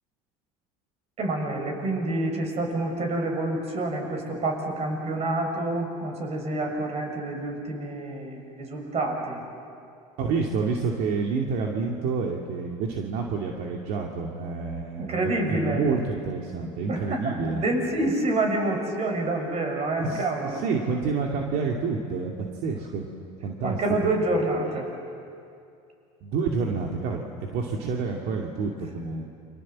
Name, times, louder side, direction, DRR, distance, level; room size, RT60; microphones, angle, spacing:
voice 1, 1.2-9.4 15.0-15.8 16.9-20.6 23.6-24.9, right 2 dB, 40° right, 2 dB, 7.0 m, -27 dB
voice 2, 10.2-17.6 20.0-23.1 23.4-23.8 26.2-29.3, right 4 dB, 65° right, 0 dB, 2.5 m, -29 dB
30.0 x 25.5 x 7.5 m, 2.5 s
supercardioid pair, 100°, 16 cm